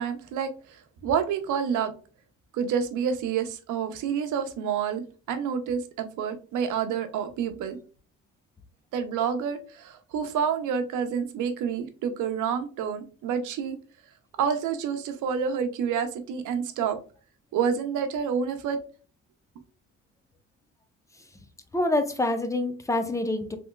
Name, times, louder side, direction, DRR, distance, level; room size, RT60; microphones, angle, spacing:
voice 1, 0.0-1.9 2.5-7.8 8.9-13.8 14.4-17.0 17.5-18.8, right 7 dB, 85° right, 0.8 m, -28 dB
voice 2, 21.7-23.6, left 2 dB, 10° left, 0.7 m, -26 dB
3.5 x 3.0 x 2.2 m
cardioid pair, 90°, 30 cm